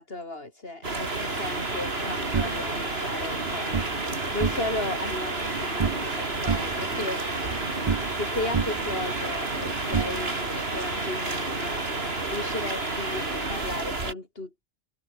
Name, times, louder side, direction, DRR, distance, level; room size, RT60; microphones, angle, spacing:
voice 1, 0.0-3.9 4.3-7.2 8.2-11.9 12.3-14.7, left 2 dB, 70° left, 4.0 m, -35 dB
sound 1, 0.8-14.1, right 3 dB, 80° right, 3.2 m, -31 dB
sound 2, 1.1-13.7, right 1 dB, 60° right, 5.7 m, -36 dB
sound 3, 2.3-3.9 4.3-5.0 5.2-6.2 6.5-8.3 8.5-10.6, right 5 dB, 35° right, 0.7 m, -31 dB
open air
omnidirectional pair, 1.0 m